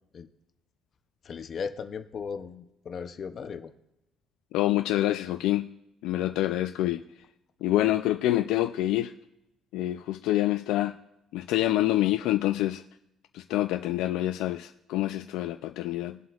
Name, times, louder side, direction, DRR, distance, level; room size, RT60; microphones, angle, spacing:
voice 1, 1.2-3.7 6.8-6.9, left 6 dB, 35° left, 0.6 m, -37 dB
voice 2, 4.5-5.7 6.0-7.0 7.6-9.1 9.7-11.0 11.3-12.8 13.3-16.2, left 15 dB, 85° left, 0.3 m, -26 dB
21.0 x 7.6 x 2.4 m
cardioid pair, 160°, 0 cm